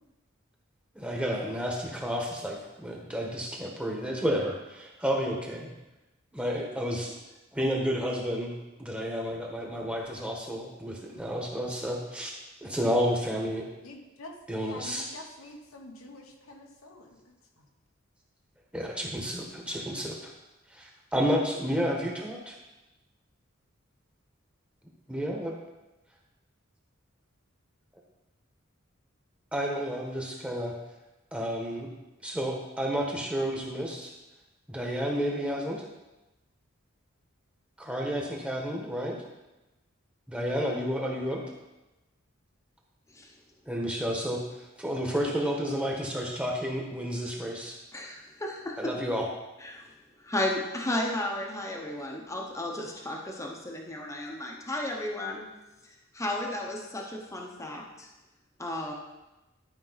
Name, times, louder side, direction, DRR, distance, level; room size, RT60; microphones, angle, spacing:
voice 1, 0.9-5.7 6.3-7.1 7.5-8.5 8.8-12.3 12.6-13.6 14.5-15.1 18.7-20.3 20.7-22.6 25.1-25.5 29.5-30.7 31.3-31.9 32.2-34.1 34.7-35.8 37.8-39.2 40.3-41.4 43.7-44.4 44.8-47.8 48.8-49.3, equal, 5° right, -1 dB, 1.3 m, -31 dB
voice 2, 13.8-17.2 17.6-17.7, left 2 dB, 80° left, 1 dB, 1.2 m, -47 dB
voice 3, 47.9-49.0 49.6-49.8 50.2-55.4 56.1-58.1 58.6-58.9, left 1 dB, 15° left, 0 dB, 0.9 m, -33 dB
12.0 x 5.2 x 4.0 m, 1.0 s
head